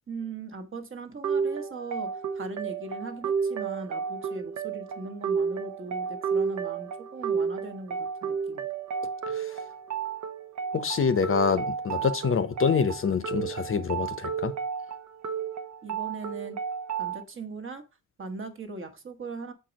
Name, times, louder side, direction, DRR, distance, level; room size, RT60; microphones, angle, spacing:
voice 1, 0.1-8.7 15.8-16.6 17.0-17.8 18.2-19.5, right 3 dB, 40° right, 1.2 m, -39 dB
sound 1, 1.2-17.2, right 6 dB, 60° right, 0.8 m, -32 dB
voice 2, 9.3-9.6 10.7-14.5, left 6 dB, 40° left, 0.7 m, -26 dB
6.9 x 4.6 x 5.1 m
wide cardioid pair, 145°, 33 cm